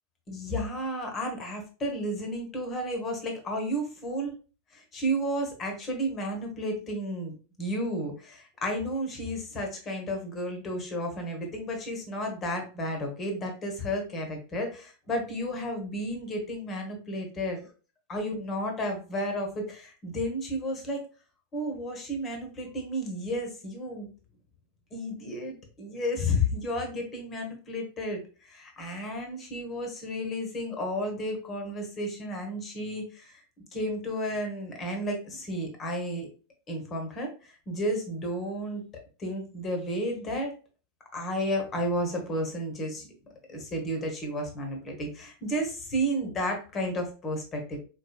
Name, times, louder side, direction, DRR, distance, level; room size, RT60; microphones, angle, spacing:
voice 1, 0.3-4.3 4.7-17.6 18.1-21.0 21.5-24.1 24.9-33.4 33.7-36.3 36.7-38.8 39.2-40.5 41.1-43.1 43.5-47.8, equal, 25° left, 3 dB, 1.2 m, -32 dB
4.2 x 3.2 x 2.3 m, 0.36 s
figure-of-eight pair, 90°, 0 cm